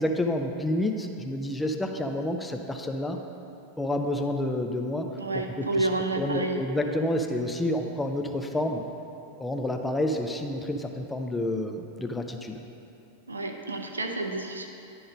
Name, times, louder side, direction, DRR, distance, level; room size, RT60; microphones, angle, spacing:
voice 1, 0.0-3.2 3.8-5.1 5.6-5.9 6.2-8.8 9.4-12.6, left 1 dB, 10° left, 4 dB, 0.5 m, -29 dB
voice 2, 5.2-6.6 13.3-14.7, right 2 dB, 75° right, 4 dB, 0.6 m, -29 dB
11.0 x 3.9 x 5.2 m, 2.8 s
figure-of-eight pair, 90°, 0 cm